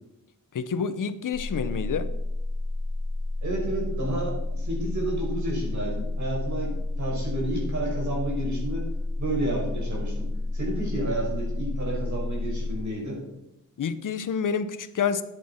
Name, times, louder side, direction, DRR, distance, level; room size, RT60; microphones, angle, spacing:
voice 1, 0.5-2.1 13.8-15.2, left 6 dB, 75° left, 12 dB, 0.8 m, -28 dB
sound 1, 1.3-12.8, left 2 dB, 35° left, 2.2 m, -30 dB
voice 2, 3.4-6.7 7.0-8.9 9.2-13.2, right 1 dB, 65° right, -2 dB, 5.6 m, -31 dB
13.5 x 10.0 x 4.4 m, 0.90 s
wide cardioid pair, 155°, 32 cm